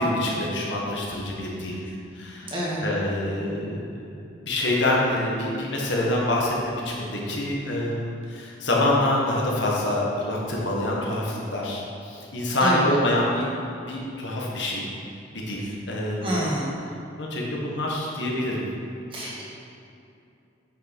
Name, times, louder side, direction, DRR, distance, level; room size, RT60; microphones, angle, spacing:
voice 1, 0.0-2.5 2.8-4.2 4.4-13.5 13.9-14.9 15.3-16.5 17.2-18.6, left 1 dB, 75° left, -3 dB, 1.6 m, -26 dB
voice 2, 2.5-2.8 12.6-12.9 16.2-16.7 19.1-19.4, right 1 dB, 25° right, -5 dB, 1.6 m, -27 dB
9.0 x 6.2 x 4.5 m, 2.6 s
head